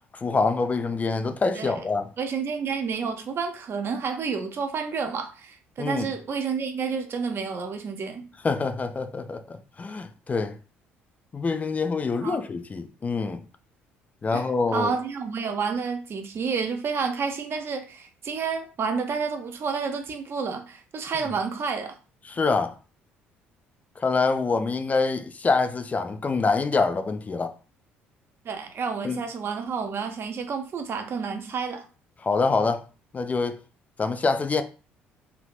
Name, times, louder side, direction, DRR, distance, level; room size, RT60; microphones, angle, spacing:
voice 1, 0.1-2.1 5.8-6.1 8.4-10.6 11.3-13.4 14.2-14.9 22.3-22.7 24.0-27.5 29.0-29.2 32.2-32.8 33.1-33.6 34.0-34.6, left 4 dB, 25° left, 0.4 m, -25 dB
voice 2, 2.2-8.3 12.2-12.4 14.3-14.5 14.7-22.0 28.4-31.8, right 5 dB, 40° right, 0.7 m, -30 dB
3.3 x 2.8 x 2.4 m
figure-of-eight pair, 50°, 6 cm